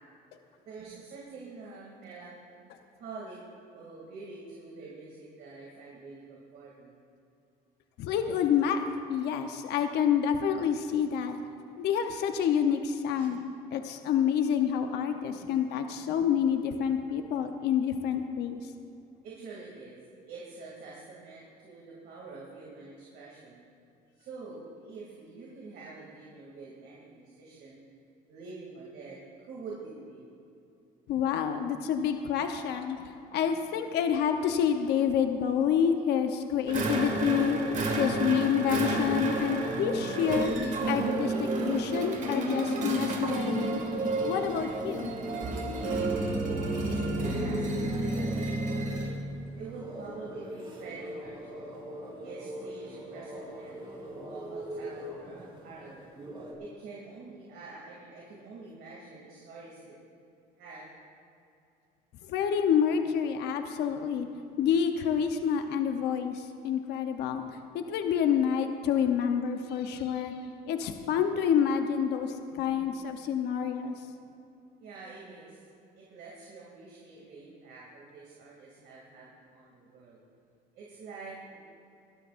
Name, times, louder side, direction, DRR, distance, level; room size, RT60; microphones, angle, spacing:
voice 1, 0.5-2.3 3.0-3.4 3.7-7.0 13.1-13.3 15.3-15.6 16.1-16.3 19.2-20.0 20.3-23.6 24.2-27.8 28.3-30.3 33.0-33.1 46.4-48.3 48.7-49.1 49.5-51.8 52.2-56.1 56.6-60.0 60.6-60.9 72.7-72.8 74.8-75.6 75.9-80.2 80.7-81.6, right 3 dB, 70° right, -5 dB, 2.6 m, -46 dB
voice 2, 8.0-11.4 11.8-13.4 13.7-18.7 31.1-33.0 33.3-37.6 38.0-43.8 44.2-45.1 62.2-64.3 64.6-67.4 67.7-70.4 70.7-73.9, left 8 dB, 80° left, 6 dB, 0.9 m, -28 dB
sound 1, 36.6-56.5, right 1 dB, 30° right, 3.1 m, -42 dB
sound 2, 36.7-49.2, right 2 dB, 50° right, 2.0 m, -31 dB
22.0 x 12.5 x 2.6 m, 2.7 s
cardioid pair, 110°, 17 cm